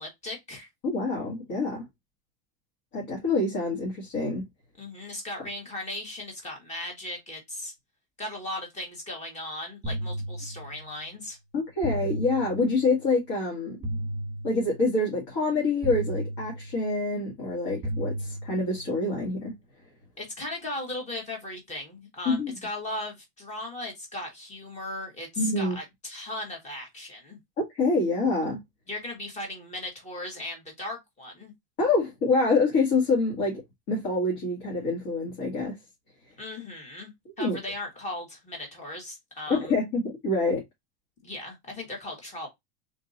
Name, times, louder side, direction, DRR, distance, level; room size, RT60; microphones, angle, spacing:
voice 1, 0.0-0.7 4.8-7.7 8.2-11.4 20.2-27.4 28.9-31.5 36.4-39.8 41.2-42.5, left 1 dB, 15° left, 1.4 m, -37 dB
voice 2, 0.8-1.8 2.9-4.4 11.5-13.8 14.4-19.5 22.3-22.6 25.4-25.8 27.7-28.6 31.8-33.6 33.9-35.8 37.4-37.6 39.5-40.6, left 3 dB, 45° left, 1.8 m, -26 dB
sound 1, 9.8-11.0 11.8-13.0 13.8-15.0 15.8-17.0 17.8-19.0, right 1 dB, 15° right, 1.5 m, -34 dB
3.8 x 2.8 x 3.9 m
supercardioid pair, 170°, 47 cm